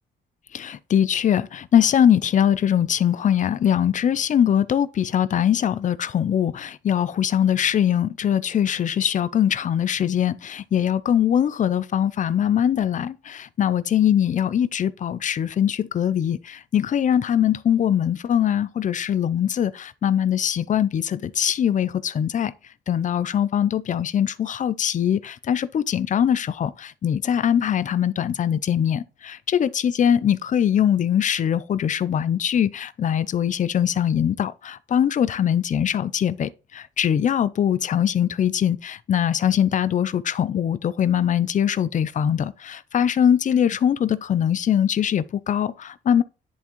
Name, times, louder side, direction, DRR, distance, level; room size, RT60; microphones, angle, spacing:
voice 1, 0.5-22.5 22.9-46.2, left 9 dB, 40° left, 0.4 m, -22 dB
10.5 x 3.5 x 3.0 m
cardioid pair, 90°, 20 cm